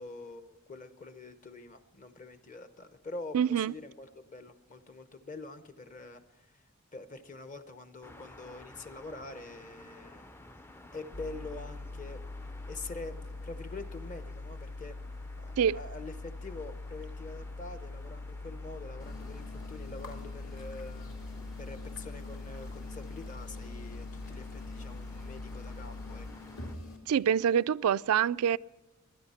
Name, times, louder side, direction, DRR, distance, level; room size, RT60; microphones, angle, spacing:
voice 1, 0.0-6.5 6.9-10.7 10.9-12.2 12.7-13.2 13.4-15.0 15.4-21.1 21.6-26.3, left 3 dB, 35° left, 0.9 m, -45 dB
voice 2, 3.3-3.7 15.6-15.8 27.1-28.6, right 8 dB, 85° right, 0.3 m, -26 dB
sound 1, 8.0-26.8, left 1 dB, 10° left, 0.4 m, -54 dB
sound 2, 11.1-26.3, left 2 dB, 85° left, 0.7 m, -43 dB
sound 3, 19.0-27.0, left 3 dB, 60° left, 2.4 m, -47 dB
22.0 x 10.0 x 4.3 m
head